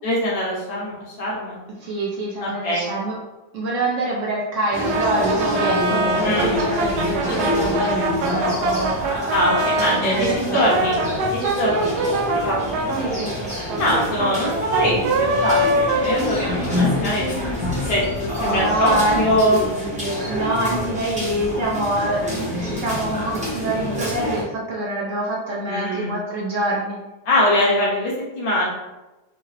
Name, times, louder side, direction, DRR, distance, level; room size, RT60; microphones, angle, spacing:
voice 1, 0.0-1.6 2.4-2.8 6.2-6.6 9.3-11.0 11.3-11.9 12.4-12.8 13.8-15.6 15.9-19.6 25.7-26.1 27.2-28.6, left 1 dB, 65° left, -6 dB, 1.5 m, -22 dB
voice 2, 1.8-3.2 3.5-9.3 9.9-10.6 12.9-13.3 18.4-19.5 20.3-27.0, right 2 dB, 65° right, -4 dB, 0.8 m, -25 dB
sound 1, 4.7-24.4, left 1 dB, 5° right, 0.6 m, -26 dB
Brass instrument, 4.9-10.0 10.5-16.8, right 2 dB, 85° right, 1.2 m, -24 dB
3.7 x 2.2 x 3.1 m, 1.1 s
omnidirectional pair, 1.7 m